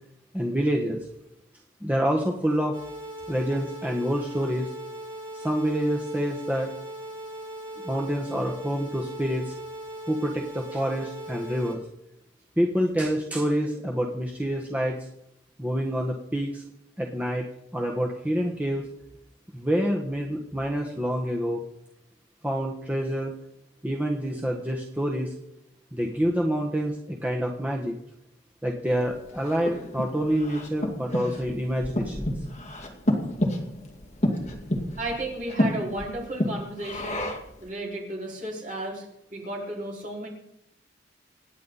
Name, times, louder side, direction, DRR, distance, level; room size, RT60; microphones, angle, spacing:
voice 1, 0.3-1.0 1.8-2.8 3.3-4.7 5.3-6.7 7.8-9.5 10.1-11.8 12.6-15.0 15.6-16.6 17.0-17.5 17.7-18.9 19.5-21.6 22.4-23.3 23.8-25.3 25.9-27.9 28.6-32.3, equal, 10° right, 0 dB, 1.3 m, -27 dB
sound 1, 2.7-11.7, right 1 dB, 25° right, 6.4 m, -39 dB
Breathing, 29.1-37.6, left 1 dB, 35° left, 2.4 m, -30 dB
voice 2, 35.0-37.3 37.6-40.3, right 1 dB, 45° right, -3 dB, 5.2 m, -34 dB
26.5 x 9.8 x 4.2 m, 0.80 s
head